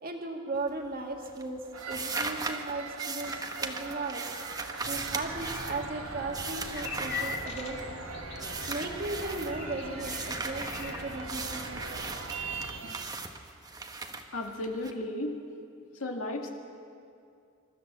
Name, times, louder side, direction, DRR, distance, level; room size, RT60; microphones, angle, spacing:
voice 1, 0.0-4.2 4.9-8.0 8.7-12.1 12.8-12.9, right 2 dB, 45° right, 2 dB, 2.0 m, -37 dB
sound 1, 0.5-8.0 8.4-9.5 10.0-14.9, right 3 dB, 20° right, 1.2 m, -38 dB
sound 2, 1.7-13.0, right 5 dB, 75° right, 1.1 m, -42 dB
sound 3, 4.8-12.8, left 3 dB, 55° left, 2.2 m, -41 dB
voice 2, 14.3-15.4 16.0-16.5, left 1 dB, 85° left, 2 dB, 2.1 m, -34 dB
26.5 x 13.5 x 7.4 m, 2.5 s
head